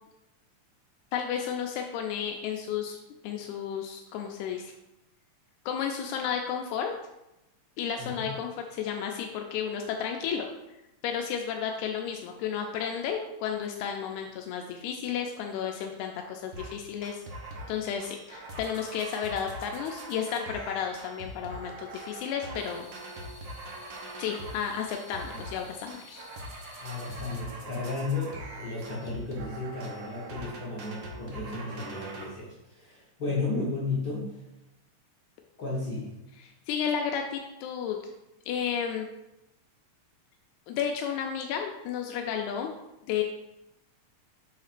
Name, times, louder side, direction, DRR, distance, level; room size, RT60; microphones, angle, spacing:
voice 1, 1.1-4.8 5.7-6.9 7.8-10.5 11.0-17.2 17.7-22.9 24.2-26.2 36.4-38.0 38.5-39.1 40.7-42.7 43.1-43.2, left 8 dB, 90° left, 2 dB, 2.0 m, -32 dB
sound 1, 16.5-16.7 17.0-17.7 18.0-24.6 24.9-25.6 25.9-32.3, right 1 dB, 65° right, 1.2 m, -42 dB
sound 2, 22.6-27.4, left 2 dB, 35° left, 2.9 m, -52 dB
voice 2, 26.8-34.4 35.6-36.1, left 3 dB, 55° left, -6 dB, 1.2 m, -34 dB
7.1 x 5.8 x 2.5 m, 0.93 s
omnidirectional pair, 3.3 m